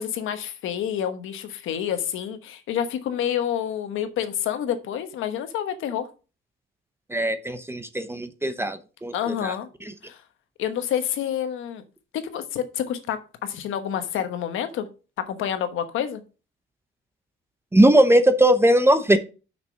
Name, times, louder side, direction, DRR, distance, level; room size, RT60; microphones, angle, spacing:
voice 1, 0.0-6.1 9.1-9.7 10.0-10.2 10.6-11.8 12.1-14.9 15.2-16.2, left 9 dB, 85° left, 9 dB, 1.2 m, -28 dB
voice 2, 7.1-9.5 17.7-19.2, right 1 dB, 10° right, 9 dB, 0.9 m, -19 dB
6.0 x 6.0 x 5.7 m, 0.34 s
cardioid pair, 90°, 20 cm